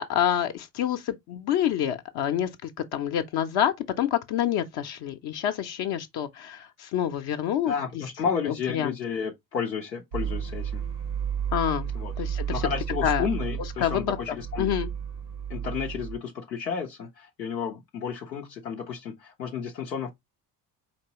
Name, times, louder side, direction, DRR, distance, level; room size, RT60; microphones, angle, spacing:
voice 1, 0.0-7.7 8.5-8.9 11.5-11.9 12.2-12.6 13.0-13.3 13.8-14.2 14.6-14.9, left 10 dB, 50° left, 0.6 m, -27 dB
voice 2, 7.6-10.8 11.9-12.1 12.5-14.7 15.5-20.1, left 6 dB, 90° left, 0.6 m, -32 dB
sound 1, 10.1-16.2, right 8 dB, 85° right, 1.2 m, -32 dB
4.5 x 2.9 x 2.8 m
figure-of-eight pair, 45°, 48 cm